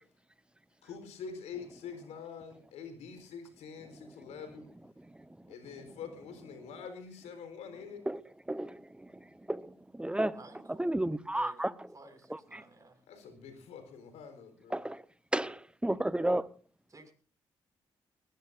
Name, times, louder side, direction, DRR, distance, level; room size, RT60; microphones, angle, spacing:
voice 1, 0.8-4.7 5.5-8.0 13.1-14.8, left 6 dB, 80° left, 4.1 m, -45 dB
voice 2, 8.5-10.4 10.7-11.9 12.3-12.6 14.7-15.0 15.3-16.5, right 1 dB, 10° right, 1.0 m, -33 dB
voice 3, 10.3-10.8 11.3-13.0 16.9-17.1, right 3 dB, 30° right, 5.9 m, -53 dB
21.0 x 16.5 x 2.6 m
supercardioid pair, 55°, 11 cm